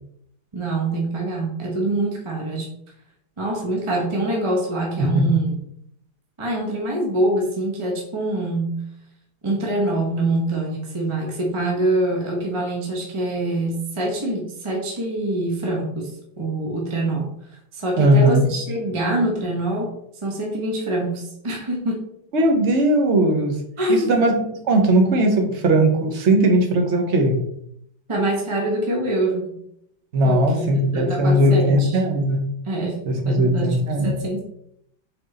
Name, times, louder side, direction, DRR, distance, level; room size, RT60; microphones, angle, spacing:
voice 1, 0.5-2.7 3.4-5.5 6.4-8.8 9.4-16.1 16.4-17.3 17.7-19.9 20.2-22.1 23.8-24.2 28.1-29.6 30.2-31.9 32.6-33.8 34.0-34.4, right 1 dB, 20° right, -1 dB, 1.1 m, -24 dB
voice 2, 5.0-5.3 18.0-18.4 22.3-23.6 23.9-27.4 30.1-32.5 33.1-34.1, right 1 dB, 40° right, 3 dB, 1.2 m, -18 dB
6.3 x 4.3 x 4.2 m, 0.72 s
omnidirectional pair, 2.1 m